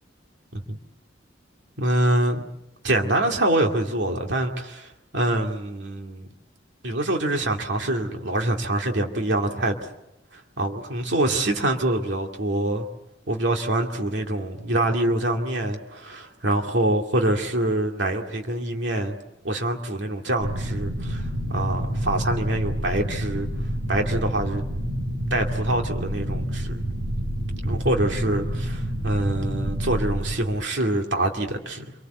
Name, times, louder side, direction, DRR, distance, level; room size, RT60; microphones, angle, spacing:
voice 1, 1.8-2.4 2.8-6.3 6.8-9.9 10.3-12.9 13.3-19.2 19.4-23.5 23.9-24.6 25.3-26.8 27.6-31.9, right 1 dB, 65° right, 2.4 m, -25 dB
sound 1, 20.4-30.4, equal, 80° right, 4.5 m, -28 dB
28.0 x 23.5 x 8.1 m
head